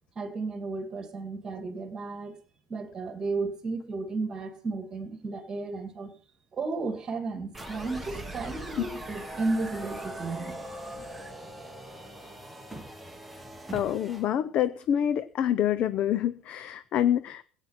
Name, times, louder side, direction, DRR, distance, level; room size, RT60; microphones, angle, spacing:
voice 1, 0.2-2.4 2.7-6.1 6.5-10.6, right 3 dB, 20° right, 7 dB, 2.5 m, -33 dB
sound 1, 7.5-14.3, right 1 dB, ahead, 1.3 m, -41 dB
voice 2, 13.7-17.4, left 10 dB, 35° left, 14 dB, 0.6 m, -27 dB
16.5 x 9.0 x 5.8 m, 0.41 s
cardioid pair, 175°, 3 cm